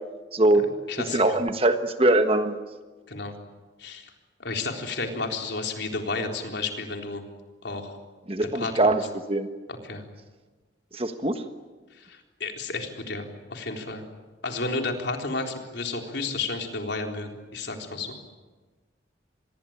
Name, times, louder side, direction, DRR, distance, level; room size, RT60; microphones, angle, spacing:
voice 1, 0.3-0.7 1.1-2.6 8.3-9.0 9.3-9.5 10.9-11.4, right 2 dB, 30° right, 8 dB, 1.4 m, -22 dB
voice 2, 0.9-1.2 3.1-3.4 3.8-4.1 4.4-7.2 7.6-8.0 8.5-9.0 9.7-10.0 11.9-14.0 14.4-18.2, left 3 dB, 65° left, 3 dB, 3.8 m, -32 dB
26.5 x 21.5 x 9.0 m, 1.3 s
head